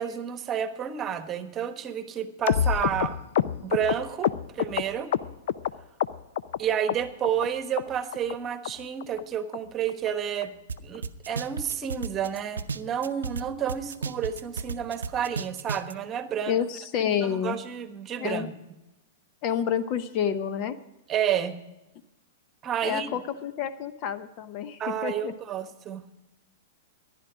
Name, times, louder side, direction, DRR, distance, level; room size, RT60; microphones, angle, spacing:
voice 1, 0.0-3.2 3.6-5.1 6.6-10.5 10.8-16.6 17.2-18.5 21.1-21.6 22.6-23.1 24.8-26.0, right 8 dB, 30° right, 10 dB, 1.2 m, -30 dB
sound 1, 2.5-5.7 6.0-6.6 6.9-7.5 7.8-7.9 8.1-8.3 8.6-8.7 9.0-9.2 9.5-9.6 9.9-10.1 10.4-10.5 10.8-11.0 11.3-11.4 11.7-11.8 12.2-12.3, left 10 dB, 60° left, 0.5 m, -27 dB
sound 2, 10.7-10.8 11.0-13.4 13.7-15.9, right 5 dB, 80° right, 0.6 m, -33 dB
voice 2, 16.5-17.6 18.2-18.5 19.4-20.8 22.8-25.3, left 8 dB, 40° left, 12 dB, 0.9 m, -29 dB
15.0 x 11.0 x 5.0 m, 0.95 s
hypercardioid pair, 105°, 0 cm